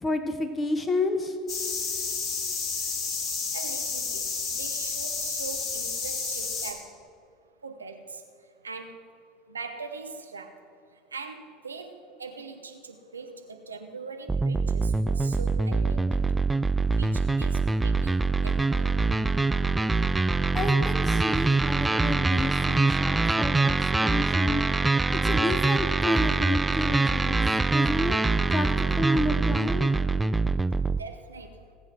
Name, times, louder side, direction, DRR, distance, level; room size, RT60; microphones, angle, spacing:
voice 1, 0.0-1.3 20.5-24.6 25.2-27.4 27.7-28.2 28.5-29.9, left 2 dB, 20° left, 8 dB, 1.0 m, -30 dB
sound 1, 1.5-6.7, left 5 dB, 40° left, 2.3 m, -31 dB
voice 2, 3.5-4.2 4.5-6.9 7.6-8.2 8.6-9.0 9.5-10.5 11.1-11.9 12.2-16.2 17.0-18.1 18.4-18.9 31.0-31.5, right 4 dB, 80° right, 6 dB, 1.0 m, -41 dB
sound 2, 14.3-31.0, right 3 dB, 10° right, 0.4 m, -24 dB
18.0 x 8.0 x 6.1 m, 2.3 s
figure-of-eight pair, 70°, 0 cm